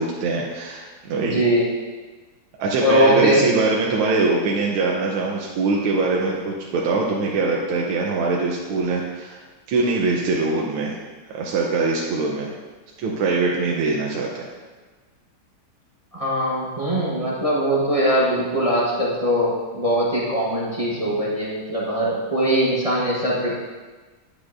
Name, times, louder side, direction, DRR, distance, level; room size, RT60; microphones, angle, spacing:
voice 1, 0.0-1.4 2.6-9.4 9.7-11.0 11.3-12.5 13.0-14.5, right 3 dB, 90° right, -2 dB, 1.6 m, -23 dB
voice 2, 1.2-1.7 2.8-3.5 16.1-23.6, equal, 25° right, -6 dB, 0.7 m, -21 dB
10.0 x 6.4 x 2.5 m, 1.3 s
omnidirectional pair, 2.3 m